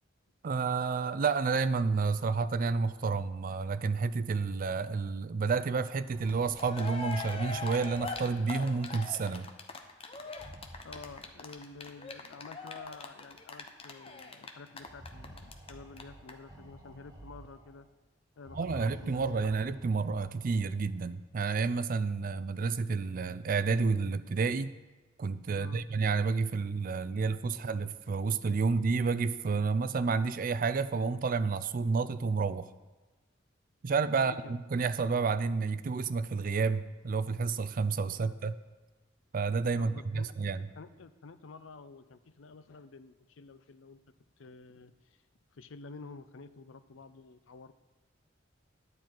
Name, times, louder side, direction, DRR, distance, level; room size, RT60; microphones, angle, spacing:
voice 1, 0.4-9.5 18.5-24.7 25.2-32.7 33.8-38.5 39.3-40.6, right 4 dB, 45° right, 13 dB, 0.4 m, -30 dB
sound 1, 6.0-8.8 10.2-11.8 12.8-12.9 13.3-13.4 14.7-17.8 18.4-21.0, equal, 20° right, 1.3 m, -52 dB
Cheering, 6.3-6.4 6.6-15.7 16.0-16.1 16.3-16.4, left 4 dB, 30° left, 0.8 m, -41 dB
voice 2, 10.8-17.9 18.4-19.4 22.3-22.4 25.5-25.9 26.9-27.1 34.2-34.5 38.2-38.4 39.8-40.5 40.7-44.0 44.4-44.9 45.5-47.7, left 4 dB, 85° left, 12 dB, 0.6 m, -50 dB
10.5 x 9.7 x 4.5 m, 1.2 s
head